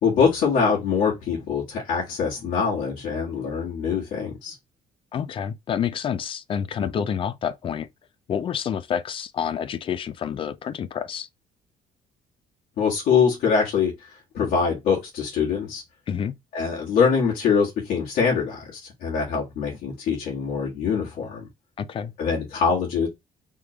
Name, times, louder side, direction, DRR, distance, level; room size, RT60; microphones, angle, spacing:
voice 1, 0.0-4.6 6.8-7.0 12.8-15.8 16.5-21.5 22.2-23.1, left 6 dB, 70° left, 1.7 m, -24 dB
voice 2, 5.1-7.9 8.3-11.3 16.1-16.4 21.8-22.1, left 8 dB, 35° left, 0.4 m, -28 dB
4.6 x 3.6 x 2.3 m
cardioid pair, 135°, 15 cm